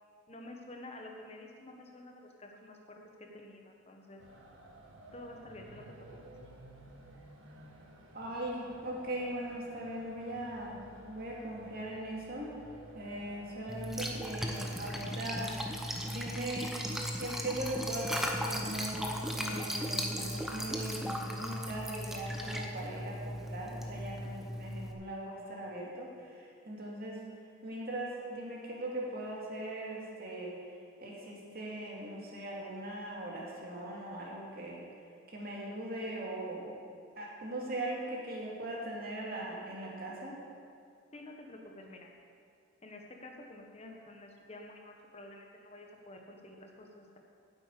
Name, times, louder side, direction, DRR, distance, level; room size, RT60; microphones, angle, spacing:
voice 1, 0.3-4.2 5.1-5.8 41.1-42.1 42.8-47.2, left 1 dB, 30° left, 2 dB, 1.3 m, -50 dB
sound 1, 4.2-19.1, right 1 dB, 75° right, 1.7 m, -54 dB
voice 2, 8.1-12.5 12.9-15.6 16.0-16.7 17.2-27.2 27.6-30.6 31.0-34.8 35.3-36.9 37.2-40.4, right 1 dB, 45° right, -3 dB, 2.4 m, -40 dB
Liquid, 13.7-24.9, equal, ahead, 0.8 m, -37 dB
10.0 x 7.8 x 8.5 m, 2.3 s
head